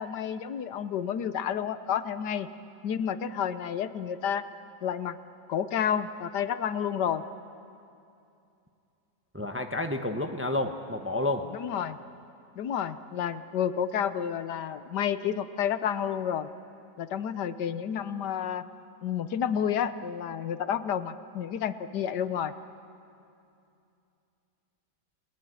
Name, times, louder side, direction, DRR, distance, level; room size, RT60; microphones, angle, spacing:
voice 1, 0.0-2.5 2.8-4.4 4.8-5.2 5.5-7.2 11.5-12.0 12.6-16.5 17.0-18.6 19.0-22.5, left 8 dB, 75° left, 12 dB, 1.5 m, -30 dB
voice 2, 9.3-11.4, left 2 dB, 10° right, 6 dB, 0.9 m, -30 dB
30.0 x 19.5 x 9.7 m, 2.6 s
omnidirectional pair, 1.8 m